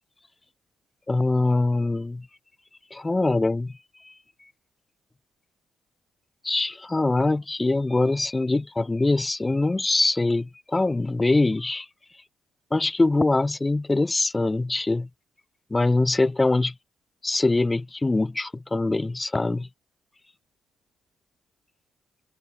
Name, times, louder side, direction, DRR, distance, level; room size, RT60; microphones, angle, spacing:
voice 1, 1.1-2.3 2.9-3.7 4.0-4.1 6.4-11.9 12.7-15.1 15.7-16.7 17.2-19.7, left 2 dB, 20° left, 0.7 m, -23 dB
cardioid pair, 90°, 0 cm